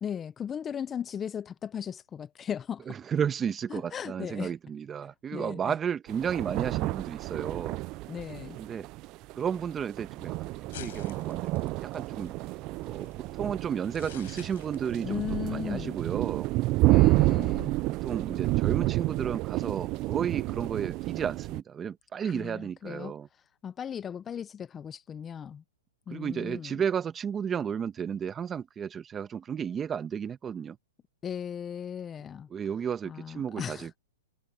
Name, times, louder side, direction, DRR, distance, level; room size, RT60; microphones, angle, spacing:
voice 1, 0.0-3.0 3.7-4.5 5.3-5.7 8.1-8.6 15.0-16.0 16.8-17.8 22.2-23.1 23.6-25.6 26.1-26.8 31.2-32.5 33.1-33.9, left 8 dB, 20° left, 0.7 m, -37 dB
voice 2, 2.9-7.8 8.6-8.9 9.3-10.5 10.8-12.3 12.8-13.1 13.4-16.5 18.0-23.3 26.1-30.8 32.5-34.0, right 7 dB, 20° right, 1.3 m, -33 dB
sound 1, 6.1-21.6, right 20 dB, 35° right, 0.4 m, -30 dB
sound 2, 10.3-15.8, left 13 dB, 65° left, 4.6 m, -50 dB
hypercardioid pair, 135°, 0 cm